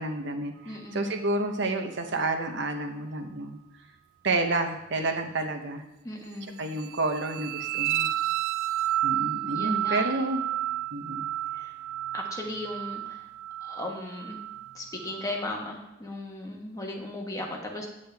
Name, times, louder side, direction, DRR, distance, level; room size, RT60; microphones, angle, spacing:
voice 1, 0.0-3.6 4.2-5.8 6.6-8.1 9.0-10.5 10.9-11.3, right 2 dB, 60° right, 6 dB, 0.8 m, -30 dB
voice 2, 0.6-1.1 6.0-6.6 9.5-10.2 11.5-11.7 12.1-13.3 13.6-14.4 14.7-17.9, left 1 dB, 15° left, 0 dB, 1.3 m, -36 dB
sound 1, 6.7-15.5, right 13 dB, 85° right, 0.3 m, -31 dB
8.6 x 8.2 x 3.4 m, 0.96 s
head